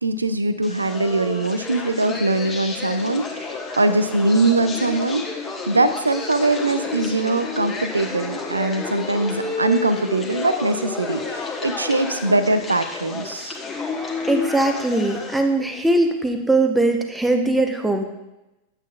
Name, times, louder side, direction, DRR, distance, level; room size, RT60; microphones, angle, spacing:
voice 1, 0.0-5.2 5.7-13.6, right 2 dB, 80° right, 11 dB, 0.5 m, -22 dB
sound 1, 0.6-15.4, left 4 dB, 20° left, 1.3 m, -31 dB
voice 2, 14.3-18.0, right 2 dB, 5° right, 5 dB, 0.9 m, -20 dB
8.8 x 8.2 x 2.4 m, 0.97 s
figure-of-eight pair, 90°, 0 cm